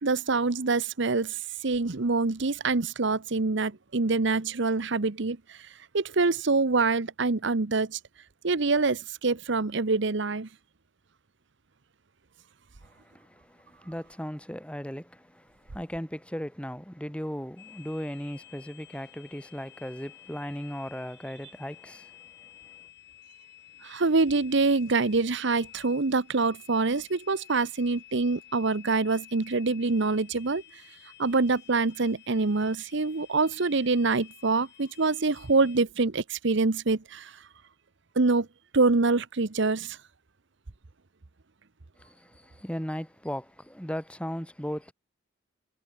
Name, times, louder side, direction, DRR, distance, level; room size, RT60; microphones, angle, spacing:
voice 1, 0.0-8.0 8.4-10.5 23.8-30.8 31.2-37.4 38.2-38.5 38.7-40.0, right 3 dB, 65° right, 1.0 m, -25 dB
voice 2, 12.8-22.9 42.0-44.9, equal, 5° left, 3.5 m, -37 dB
sound 1, 17.6-35.8, left 12 dB, 60° left, 4.2 m, -53 dB
head